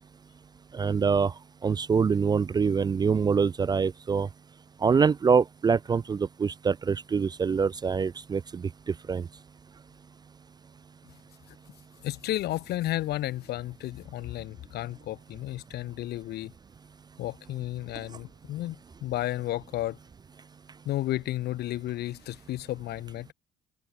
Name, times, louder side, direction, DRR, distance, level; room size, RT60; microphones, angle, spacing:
voice 1, 0.7-1.3 1.6-4.3 4.8-9.3, right 5 dB, 25° right, 0.4 m, -25 dB
voice 2, 12.0-16.5 17.2-18.8 19.0-20.0 20.8-23.3, left 15 dB, 75° left, 2.8 m, -32 dB
cardioid pair, 110°, 17 cm